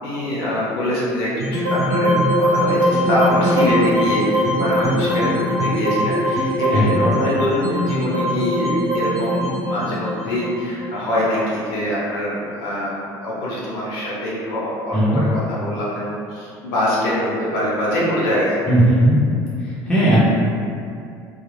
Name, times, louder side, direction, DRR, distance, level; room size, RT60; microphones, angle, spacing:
voice 1, 0.0-18.6, left 1 dB, 70° left, -7 dB, 0.8 m, -24 dB
sound 1, 1.4-11.6, equal, 60° right, 0.8 m, -21 dB
voice 2, 18.7-19.2 19.9-20.2, right 1 dB, 10° left, -10 dB, 0.6 m, -16 dB
2.3 x 2.0 x 3.2 m, 2.5 s
cardioid pair, 165°, 9 cm